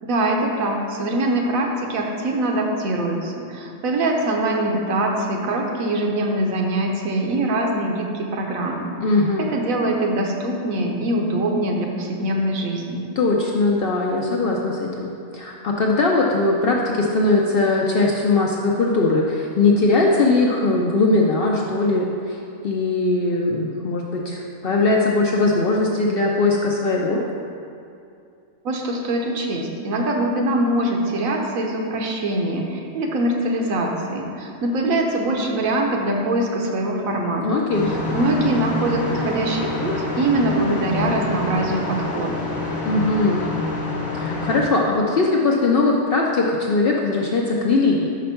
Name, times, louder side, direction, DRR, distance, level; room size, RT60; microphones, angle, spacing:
voice 1, 0.0-8.9 9.4-13.1 28.6-37.6 38.1-42.5, right 1 dB, 75° right, 1 dB, 1.2 m, -23 dB
voice 2, 9.0-9.5 13.2-27.2 37.4-37.9 42.8-43.5 44.1-48.1, left 3 dB, 60° left, -2 dB, 0.6 m, -20 dB
sound 1, 37.7-44.6, left 2 dB, 45° left, 1.1 m, -27 dB
5.2 x 5.1 x 5.6 m, 2.5 s
omnidirectional pair, 1.5 m